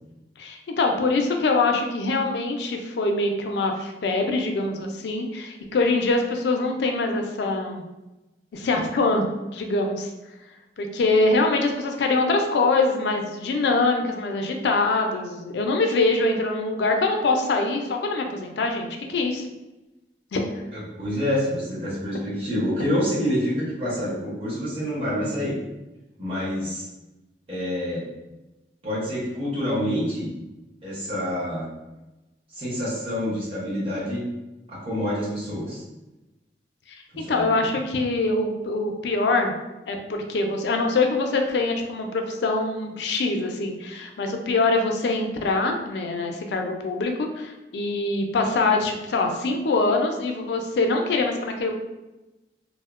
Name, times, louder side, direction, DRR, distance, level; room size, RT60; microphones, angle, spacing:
voice 1, 0.4-7.8 8.5-9.3 9.5-10.1 10.8-19.5 20.3-20.6 37.2-39.5 39.9-51.7, left 3 dB, 70° left, 3 dB, 0.3 m, -24 dB
voice 2, 20.7-25.6 26.2-26.9 27.5-28.1 28.8-30.3 30.8-31.7 32.5-34.2 34.7-35.8 37.1-37.7, equal, 30° right, -8 dB, 0.9 m, -27 dB
2.7 x 2.0 x 2.3 m, 1.0 s
head